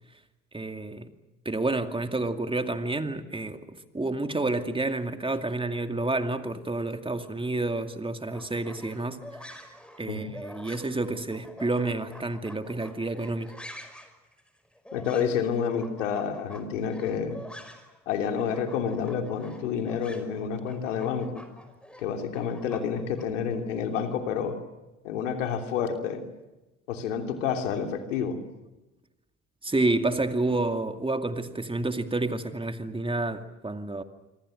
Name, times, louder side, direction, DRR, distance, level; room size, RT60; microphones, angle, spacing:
voice 1, 0.5-1.1 1.4-9.2 10.0-13.5 29.6-34.0, right 2 dB, 15° right, 2.4 m, -29 dB
sound 1, 8.2-18.0 18.2-23.3, equal, 5° left, 5.4 m, -47 dB
voice 2, 14.9-17.4 18.1-21.4 22.0-24.6 25.0-26.2 26.9-28.4, left 7 dB, 80° left, 3.1 m, -29 dB
27.0 x 25.0 x 6.5 m
hypercardioid pair, 60°, 37 cm